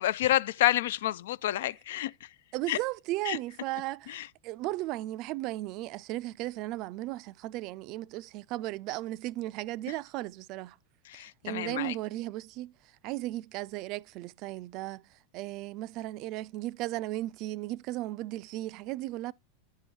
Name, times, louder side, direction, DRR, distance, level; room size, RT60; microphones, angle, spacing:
voice 1, 0.0-2.3 2.7-2.8 3.3-3.4 4.1-4.3 11.1-11.9, left 14 dB, 70° left, 0.3 m, -29 dB
voice 2, 2.5-10.8 11.1-19.3, right 17 dB, 50° right, 0.3 m, -36 dB
10.5 x 3.8 x 4.6 m
hypercardioid pair, 100°, 0 cm